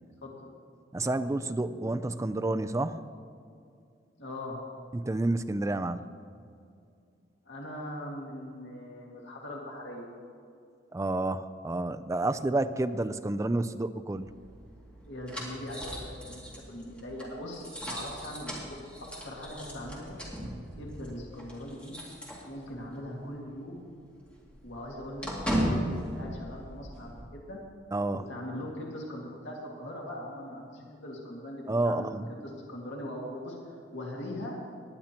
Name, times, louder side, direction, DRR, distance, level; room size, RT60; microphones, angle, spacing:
voice 1, 0.2-0.5 4.2-4.6 7.4-10.1 15.1-16.4 16.7-18.8 19.2-20.2 20.6-22.0 22.5-23.8 24.6-25.8 26.1-27.6 28.3-33.6 33.9-34.6, left 1 dB, 90° left, -2 dB, 1.9 m, -41 dB
voice 2, 0.9-3.0 4.9-6.1 10.9-14.3 27.9-28.2 31.7-32.3, right 2 dB, 15° right, 11 dB, 0.3 m, -29 dB
sound 1, 14.1-23.0 23.3-23.4 23.8-27.2, equal, 5° left, 2.3 m, -37 dB
19.0 x 10.5 x 2.9 m, 2.4 s
head